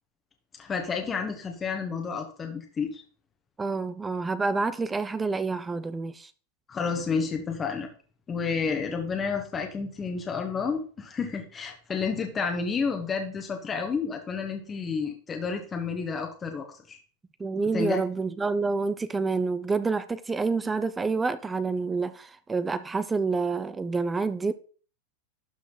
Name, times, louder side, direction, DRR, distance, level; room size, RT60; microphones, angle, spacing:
voice 1, 0.6-3.0 6.7-7.9 8.3-17.0 17.7-18.0, left 5 dB, 20° left, 1.2 m, -30 dB
voice 2, 3.6-6.3 17.4-24.5, right 4 dB, 10° right, 0.4 m, -28 dB
12.0 x 4.9 x 3.9 m
supercardioid pair, 140°, 0 cm